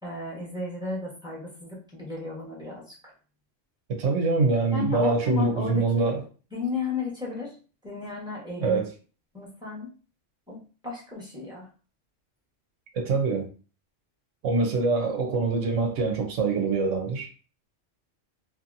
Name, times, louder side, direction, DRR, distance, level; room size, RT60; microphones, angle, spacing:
voice 1, 0.0-3.1 4.7-6.2 6.5-7.5 7.8-8.8 9.3-9.9 10.5-11.7, left 4 dB, 5° right, 0.9 m, -34 dB
voice 2, 3.9-6.2 8.6-8.9 12.9-13.5 14.4-17.3, right 4 dB, 80° right, 1.0 m, -24 dB
2.7 x 2.6 x 2.5 m
omnidirectional pair, 1.3 m